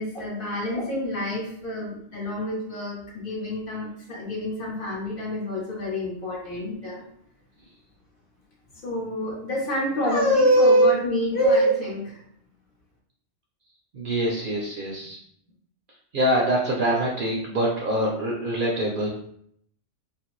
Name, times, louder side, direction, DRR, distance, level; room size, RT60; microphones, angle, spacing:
voice 1, 0.0-7.0 8.7-12.2, equal, 55° left, -3 dB, 0.9 m, -25 dB
voice 2, 13.9-15.2 16.1-19.1, right 1 dB, 60° right, -2 dB, 0.6 m, -25 dB
2.8 x 2.4 x 3.0 m, 0.68 s
omnidirectional pair, 1.3 m